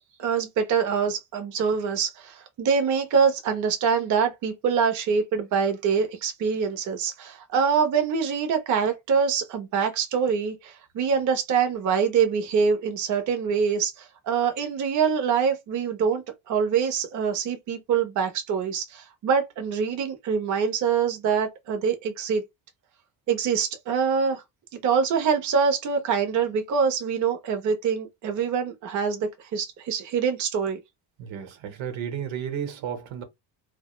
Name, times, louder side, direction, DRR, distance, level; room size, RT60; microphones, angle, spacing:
voice 1, 0.0-22.4 23.3-24.4 24.8-30.8, right 6 dB, 40° right, 0.4 m, -25 dB
voice 2, 31.2-33.2, right 8 dB, 80° right, 0.8 m, -33 dB
2.4 x 2.0 x 2.9 m
cardioid pair, 170°, 46 cm